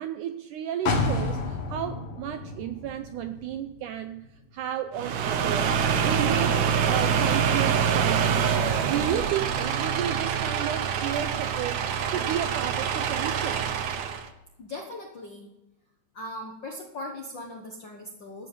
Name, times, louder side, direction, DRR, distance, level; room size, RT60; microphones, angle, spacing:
voice 1, 0.0-4.3 4.5-5.8 6.0-8.4 8.8-13.7, right 10 dB, 90° right, 8 dB, 1.8 m, -32 dB
sound 1, 0.9-4.6 5.0-5.1, left 3 dB, 55° left, 1.6 m, -31 dB
sound 2, 4.9-14.3, right 7 dB, 65° right, 1.9 m, -25 dB
voice 2, 14.6-15.5 16.1-18.5, left 1 dB, 80° left, 1 dB, 1.0 m, -39 dB
13.5 x 8.5 x 5.3 m, 0.99 s
omnidirectional pair, 4.2 m